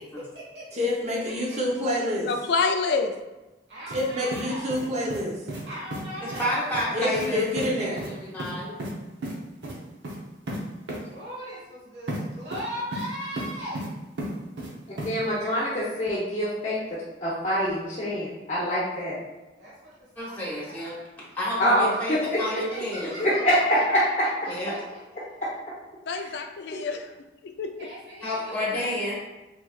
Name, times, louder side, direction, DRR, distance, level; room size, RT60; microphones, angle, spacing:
voice 1, 0.0-0.7 1.2-1.6 3.7-4.8 5.7-6.6 11.1-13.9 19.6-20.8 22.7-24.1 24.4-24.8 27.8-29.1, equal, 70° right, -7 dB, 1.3 m, -39 dB
voice 2, 0.7-2.3 3.9-5.4 6.9-8.0, left 1 dB, 40° right, -3 dB, 0.8 m, -27 dB
voice 3, 2.3-3.1 26.1-27.1 27.4-27.7, left 4 dB, 70° left, 6 dB, 0.3 m, -27 dB
sound 1, 3.9-4.1 4.3-5.2 5.5-5.6 5.9-6.0 6.3-6.5 6.7-6.9 7.1-7.3 7.6-7.7 8.0-8.1 8.4-8.9 9.2-9.4 9.6-9.8 10.0-10.2 10.5-10.6 10.9-11.0 12.1-12.2 12.5-13.1 13.4-13.9 14.2-14.7 15.0-15.1, right 1 dB, 90° right, 0.7 m, -33 dB
voice 4, 6.2-8.8 20.2-20.9 21.3-23.1 24.5-24.8 28.2-29.1, left 1 dB, 10° left, -7 dB, 1.0 m, -30 dB
voice 5, 15.0-16.8 17.2-19.1 21.6-22.4 23.2-24.2 26.2-26.3, equal, 35° left, -8 dB, 0.7 m, -24 dB
3.6 x 3.0 x 2.3 m, 1.1 s
head